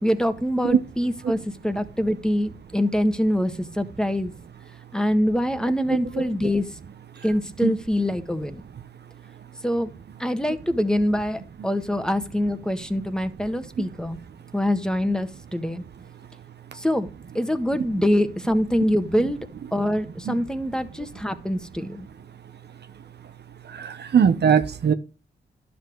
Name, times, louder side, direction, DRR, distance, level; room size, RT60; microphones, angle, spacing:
voice 1, 0.0-4.3 4.9-6.6 7.2-8.6 9.6-9.9 10.2-14.2 14.5-15.8 16.7-17.1 17.3-19.4 19.7-22.1, equal, 5° left, 1.5 m, -24 dB
voice 2, 23.7-24.9, right 7 dB, 60° right, 0.9 m, -20 dB
11.5 x 6.0 x 4.6 m
supercardioid pair, 45°, 19 cm